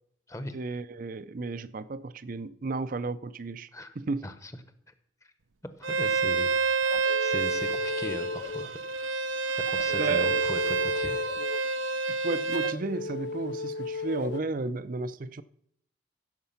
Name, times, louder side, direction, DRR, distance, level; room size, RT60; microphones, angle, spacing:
voice 1, 0.5-4.3 10.0-10.4 12.2-15.4, right 3 dB, 45° right, 0.5 m, -33 dB
voice 2, 5.6-8.8 9.7-11.3, left 1 dB, 15° left, 0.9 m, -39 dB
Bowed string instrument, 5.8-12.8, right 4 dB, 90° right, 0.7 m, -28 dB
sound 1, 6.8-8.7 9.6-11.7 12.5-14.4, left 4 dB, 60° left, 0.4 m, -36 dB
15.5 x 6.7 x 5.7 m
head